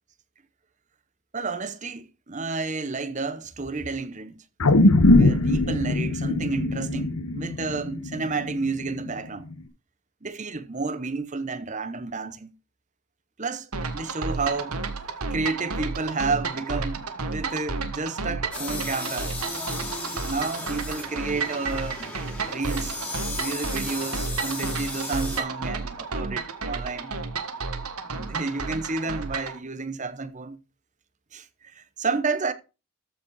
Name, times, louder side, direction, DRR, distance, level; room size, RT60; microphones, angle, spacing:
voice 1, 1.3-4.4 4.7-9.4 10.2-12.5 13.4-14.8 15.3-19.3 20.2-22.2 22.5-23.0 23.3-27.1 28.1-30.6 31.3-32.5, right 4 dB, 35° right, 0.9 m, -31 dB
sound 1, 4.6-9.1 9.5-9.6, left 2 dB, 80° left, 1.2 m, -21 dB
sound 2, 13.7-29.6, right 4 dB, 85° right, 1.5 m, -32 dB
sound 3, 18.5-25.4, left 2 dB, 5° left, 2.5 m, -35 dB
13.5 x 5.1 x 4.8 m
head